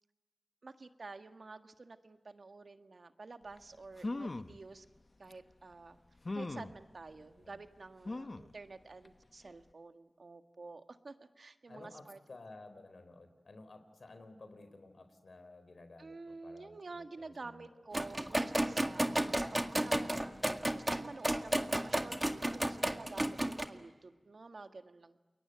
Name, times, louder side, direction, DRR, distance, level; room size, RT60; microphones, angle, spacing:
voice 1, 0.6-4.8 5.2-6.0 6.3-12.2 16.0-20.1 20.7-25.2, right 3 dB, 75° right, 8 dB, 1.6 m, -50 dB
hmm oh, 3.6-3.7 4.0-4.6 5.3-5.4 6.2-6.8 8.1-8.5 9.0-9.1 9.4-9.5, left 2 dB, 55° left, 0.9 m, -39 dB
voice 2, 7.1-7.6 11.7-17.7, left 2 dB, 75° left, 9 dB, 4.0 m, -54 dB
sound 1, 17.9-23.7, right 1 dB, 25° right, 2.0 m, -32 dB
29.0 x 22.0 x 9.2 m, 1.2 s
cardioid pair, 40°, 0 cm